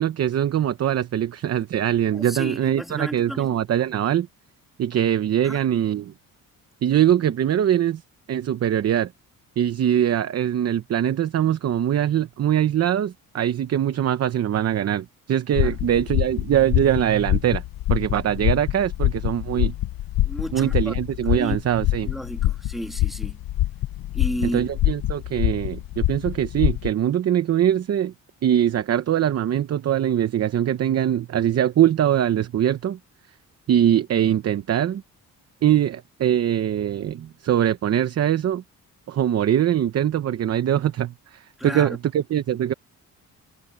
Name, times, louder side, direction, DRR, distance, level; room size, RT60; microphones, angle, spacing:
voice 1, 0.0-4.3 4.8-6.1 6.8-8.0 8.3-9.1 9.6-17.6 17.9-19.7 20.5-22.1 24.4-28.1 28.4-33.0 33.7-35.0 35.6-38.6 39.1-42.7, right 10 dB, 45° right, 0.8 m, -22 dB
voice 2, 2.1-3.6 5.4-5.6 15.6-15.7 20.2-20.9 21.3-21.6 22.1-23.4 24.1-24.6 41.6-42.0, equal, ahead, 2.3 m, -33 dB
sound 1, 15.6-26.9, left 15 dB, 85° left, 0.9 m, -25 dB
cardioid pair, 145°, 34 cm